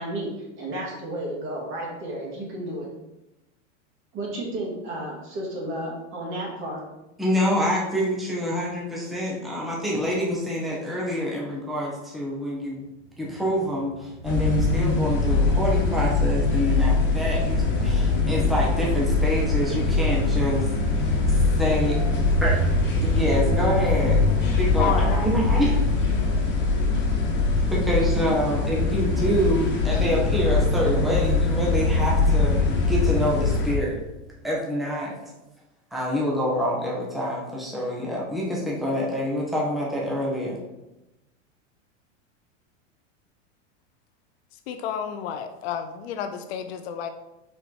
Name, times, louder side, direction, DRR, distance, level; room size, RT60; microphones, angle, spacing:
voice 1, 0.0-2.9 4.1-6.8, right 1 dB, 35° right, -2 dB, 2.3 m, -32 dB
voice 2, 7.2-12.8 13.2-22.0 22.4-22.6 23.0-24.3 24.5-25.8 27.7-34.0 34.4-35.3 35.9-40.6, equal, ahead, -4 dB, 1.2 m, -26 dB
sound 1, 12.8-27.1, right 2 dB, 75° right, 1.6 m, -35 dB
sound 2, 14.2-33.7, left 3 dB, 30° left, 1.6 m, -22 dB
voice 3, 23.8-25.3 44.5-47.1, left 9 dB, 55° left, 7 dB, 0.7 m, -32 dB
5.1 x 4.7 x 4.6 m, 0.95 s
supercardioid pair, 140°, 37 cm